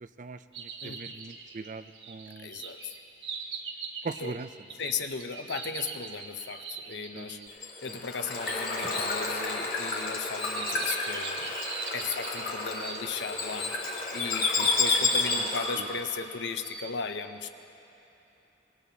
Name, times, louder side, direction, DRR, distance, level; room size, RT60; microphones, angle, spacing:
voice 1, 0.0-2.5 4.0-4.5 7.1-7.5 14.6-14.7 15.4-15.5 15.8-15.9, right 4 dB, 45° right, 11 dB, 0.4 m, -41 dB
sound 1, 0.5-7.5 8.4-8.5 9.9-13.6 14.1-14.3 14.9-15.5 16.1-17.0, right 5 dB, 80° right, 1.3 m, -41 dB
voice 2, 0.8-1.2 2.4-2.9 4.2-4.4 4.8-11.5 11.9-17.5, left 5 dB, 70° left, 8 dB, 0.7 m, -36 dB
Bird / Water, 7.5-15.9, left 3 dB, 50° left, 2.3 m, -30 dB
25.0 x 20.5 x 2.8 m, 3.0 s
head